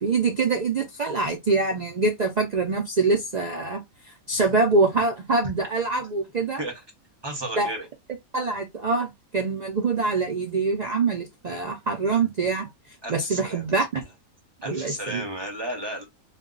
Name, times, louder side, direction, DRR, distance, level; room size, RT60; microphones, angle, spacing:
voice 1, 0.0-3.8 4.3-6.6 7.6-7.7 8.3-12.7 13.1-14.0 14.7-15.3, right 3 dB, 85° right, 0.3 m, -24 dB
voice 2, 7.2-7.9 11.5-11.6 13.0-13.7 14.6-16.0, right 1 dB, 25° right, 0.6 m, -33 dB
2.3 x 2.2 x 3.7 m
omnidirectional pair, 1.5 m